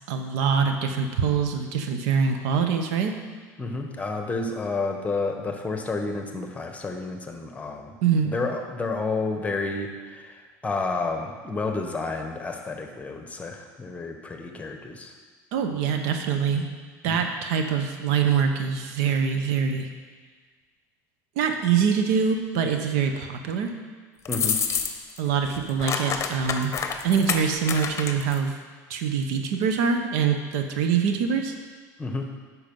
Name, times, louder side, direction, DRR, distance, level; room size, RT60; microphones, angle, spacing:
voice 1, 0.1-3.2 8.0-8.3 15.5-16.7 17.0-19.9 21.4-23.8 25.2-26.7 27.0-28.5 28.9-31.5, right 6 dB, 75° right, 5 dB, 1.0 m, -24 dB
voice 2, 3.6-8.0 8.2-15.1 17.1-17.3 24.3-24.6 32.0-32.3, left 3 dB, 15° left, 4 dB, 1.2 m, -30 dB
sound 1, 24.3-25.2 25.5-28.4, left 6 dB, 35° left, 0.9 m, -28 dB
9.0 x 6.4 x 5.4 m, 1.5 s
supercardioid pair, 95°, 8 cm